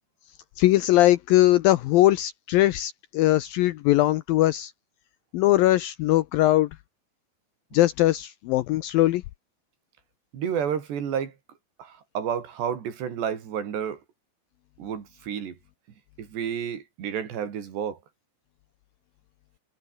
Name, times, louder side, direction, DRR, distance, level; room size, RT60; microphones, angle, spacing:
voice 1, 0.6-4.7 5.3-6.7 7.7-9.2, left 15 dB, 80° left, 2.1 m, -20 dB
voice 2, 10.3-11.3 11.8-14.0 14.8-15.6 16.2-18.0, right 8 dB, 80° right, 5.5 m, -30 dB
omnidirectional pair, 4.9 m